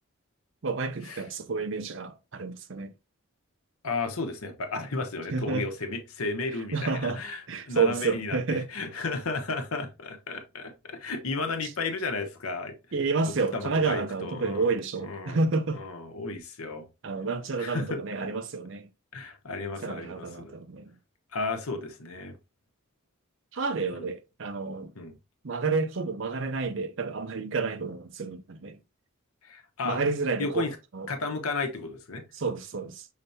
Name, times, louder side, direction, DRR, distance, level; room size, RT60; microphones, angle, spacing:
voice 1, 0.6-2.9 5.3-5.7 6.7-7.2 7.5-8.7 11.6-11.7 12.9-15.8 17.0-18.9 19.8-20.9 23.5-24.9 25.4-28.8 29.8-30.6 30.9-31.1 32.3-33.1, right 4 dB, 60° right, 0.6 m, -30 dB
voice 2, 3.8-12.7 13.5-14.7 15.0-15.4 15.7-16.9 17.6-18.3 19.1-20.5 21.3-22.3 23.9-24.1 25.0-25.2 29.4-30.0 30.4-30.8 31.1-32.2, left 3 dB, 85° left, 0.9 m, -33 dB
5.8 x 3.3 x 2.7 m
head